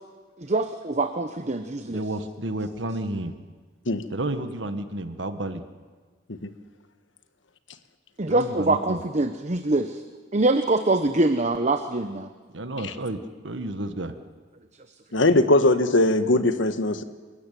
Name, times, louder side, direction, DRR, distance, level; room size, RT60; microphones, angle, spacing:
voice 1, 0.4-2.0 8.2-10.0 10.3-12.3, right 2 dB, 35° right, 8 dB, 0.9 m, -24 dB
voice 2, 1.9-3.3 4.1-5.6 8.3-9.0 12.5-14.1, right 2 dB, 70° right, 9 dB, 1.5 m, -31 dB
voice 3, 15.1-17.0, left 2 dB, 80° left, 10 dB, 1.4 m, -20 dB
27.0 x 14.5 x 9.3 m, 1.5 s
head